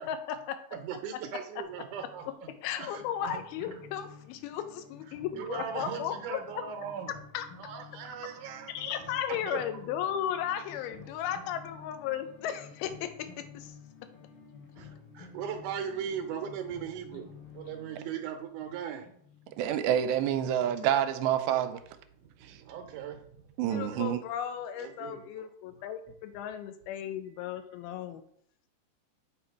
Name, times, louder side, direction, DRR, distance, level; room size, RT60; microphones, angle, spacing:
voice 1, 0.1-0.6 2.6-6.4 7.3-7.5 8.7-13.8 23.7-28.2, left 9 dB, 90° left, 2.6 m, -35 dB
voice 2, 0.7-2.5 2.8-3.8 5.3-7.2 7.6-9.2 9.5-9.6 14.8-17.3 17.5-19.1 22.1-24.1 24.8-25.5 27.4-27.5, right 8 dB, 70° right, 2.1 m, -39 dB
sound 1, 1.6-20.7, left 6 dB, 70° left, 3.8 m, -52 dB
voice 3, 19.5-21.8 22.4-22.6 23.6-24.2, right 10 dB, 85° right, 2.4 m, -28 dB
9.0 x 3.8 x 4.6 m
omnidirectional pair, 4.3 m